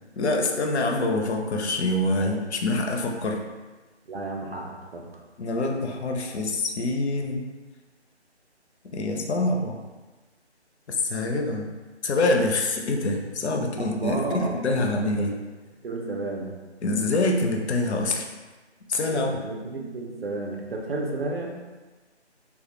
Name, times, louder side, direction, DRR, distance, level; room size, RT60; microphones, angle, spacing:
voice 1, 0.2-3.4 5.4-7.4 8.8-9.8 10.9-11.7 12.0-15.3 16.8-18.3 18.9-19.3, left 2 dB, 70° left, 2 dB, 0.5 m, -25 dB
voice 2, 4.1-5.1 13.8-15.3 15.8-16.6 19.1-21.5, right 2 dB, 60° right, 0 dB, 0.5 m, -32 dB
2.2 x 2.0 x 2.9 m, 1.3 s
figure-of-eight pair, 175°, 34 cm